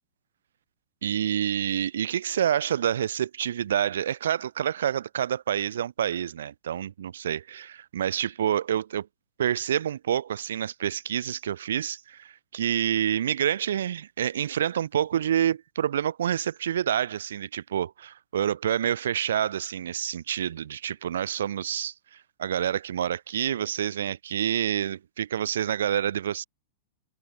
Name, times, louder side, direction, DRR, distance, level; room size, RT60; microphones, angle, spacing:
voice 1, 1.0-9.1 9.4-21.9 22.4-26.4, right 10 dB, 80° right, 2.1 m, -28 dB
hypercardioid pair, 125°, 0 cm